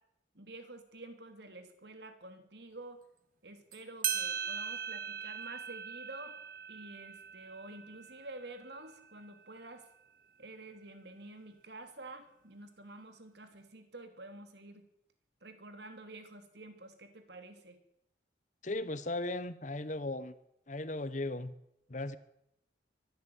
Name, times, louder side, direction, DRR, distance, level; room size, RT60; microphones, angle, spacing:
voice 1, 0.3-3.0 3.4-6.4 6.7-9.9 10.4-14.8 15.4-17.8, right 2 dB, 60° right, 8 dB, 3.1 m, -49 dB
sound 1, 3.7-3.8 4.0-9.1, right 8 dB, 45° right, 1.9 m, -39 dB
voice 2, 18.6-20.3 20.7-21.5 21.9-22.2, left 2 dB, 40° left, 15 dB, 1.0 m, -37 dB
23.0 x 12.0 x 9.6 m, 0.80 s
head